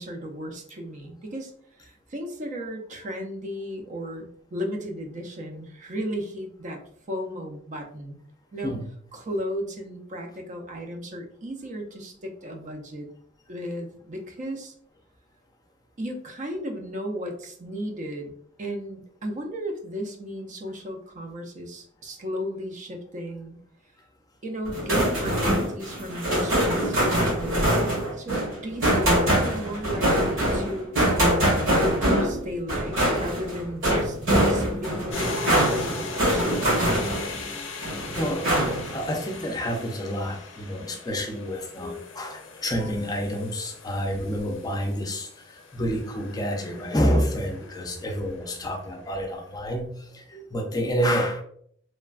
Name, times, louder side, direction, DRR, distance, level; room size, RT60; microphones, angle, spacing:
voice 1, 0.0-1.5 1.8-6.8 7.1-8.2 8.5-8.8 9.1-13.1 13.5-14.7 16.0-23.6 24.4-31.0 31.6-36.8, equal, 40° right, 3 dB, 0.5 m, -35 dB
sound 1, 24.6-37.4 37.8-39.0, right 1 dB, 80° right, 1.4 m, -24 dB
sound 2, 35.1-49.2, left 4 dB, 90° left, 0.5 m, -39 dB
voice 2, 38.2-51.4, equal, 20° left, 1 dB, 0.5 m, -28 dB
3.1 x 2.2 x 2.3 m, 0.64 s
head